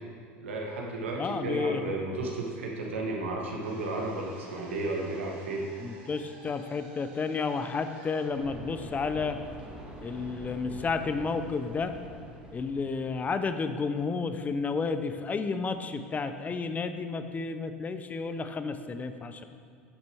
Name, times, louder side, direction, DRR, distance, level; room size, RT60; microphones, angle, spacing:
voice 1, 0.4-5.7, right 2 dB, 80° right, -1 dB, 1.4 m, -33 dB
voice 2, 1.2-1.8 5.8-9.4 10.0-11.9 12.5-19.4, left 4 dB, 25° left, 9 dB, 0.5 m, -31 dB
sound 1, 3.6-9.7, right 2 dB, 55° right, 1.7 m, -53 dB
sound 2, 8.3-13.4, equal, 15° right, 1.9 m, -45 dB
9.8 x 6.6 x 3.5 m, 2.3 s
hypercardioid pair, 80°, 6 cm